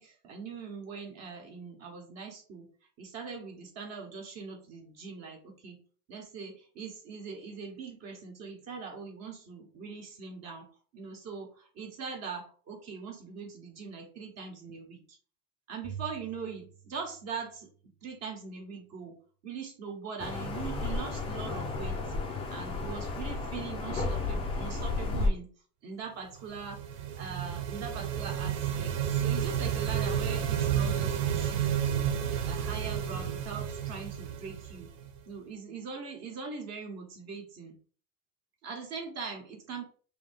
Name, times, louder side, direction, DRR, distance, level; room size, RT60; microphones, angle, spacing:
voice 1, 0.0-2.7 3.0-5.8 6.1-10.7 10.9-15.2 15.7-19.2 19.4-22.0 22.5-25.5 25.8-32.1 32.4-34.9 35.3-37.7 38.6-39.8, right 5 dB, 35° right, 2 dB, 1.1 m, -41 dB
Bowed string instrument, 15.8-18.2, right 7 dB, 5° right, 1.0 m, -47 dB
sound 1, 20.2-25.3, left 3 dB, 15° left, 0.4 m, -33 dB
sound 2, 26.4-35.2, right 9 dB, 65° right, 0.7 m, -31 dB
3.4 x 2.8 x 3.6 m, 0.41 s
cardioid pair, 160°, 43 cm